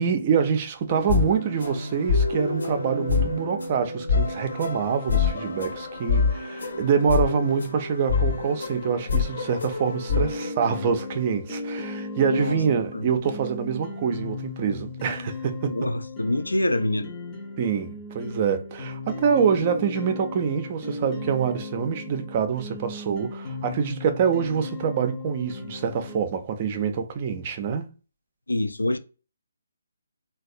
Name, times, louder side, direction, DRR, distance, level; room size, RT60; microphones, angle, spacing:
voice 1, 0.0-15.9 17.6-27.9, right 6 dB, 30° right, 0.4 m, -26 dB
sound 1, 0.9-10.5, left 5 dB, 60° left, 0.8 m, -26 dB
sound 2, 10.1-26.2, left 2 dB, 15° left, 0.7 m, -36 dB
voice 2, 12.2-12.6 12.9-13.0 15.6-17.1 28.5-29.0, left 1 dB, 75° left, 0.4 m, -25 dB
3.3 x 2.2 x 2.5 m
figure-of-eight pair, 140°, 0 cm